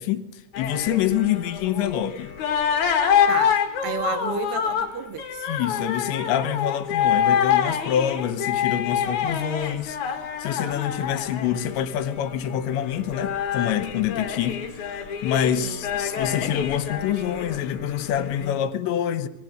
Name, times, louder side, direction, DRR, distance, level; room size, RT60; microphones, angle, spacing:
voice 1, 0.0-2.3 5.4-19.3, left 10 dB, 75° left, 3.3 m, -26 dB
sound 1, 0.5-18.5, left 8 dB, 50° left, 3.0 m, -26 dB
voice 2, 3.3-5.5 15.6-15.8, right 8 dB, 70° right, 3.1 m, -32 dB
27.5 x 21.5 x 7.9 m
omnidirectional pair, 5.4 m